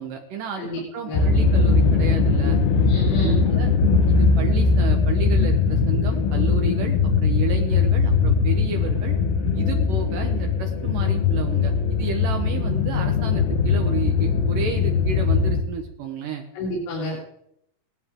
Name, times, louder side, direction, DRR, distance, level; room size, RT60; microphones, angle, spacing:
voice 1, 0.0-2.6 3.2-3.7 4.1-9.2 9.5-16.4, right 6 dB, 75° right, 4 dB, 1.9 m, -32 dB
voice 2, 0.6-1.2 2.8-3.5 16.5-17.2, left 1 dB, 85° left, -6 dB, 4.9 m, -30 dB
sound 1, 1.1-15.6, left 4 dB, 70° left, 2.8 m, -20 dB
18.0 x 13.0 x 3.7 m, 0.74 s
omnidirectional pair, 5.2 m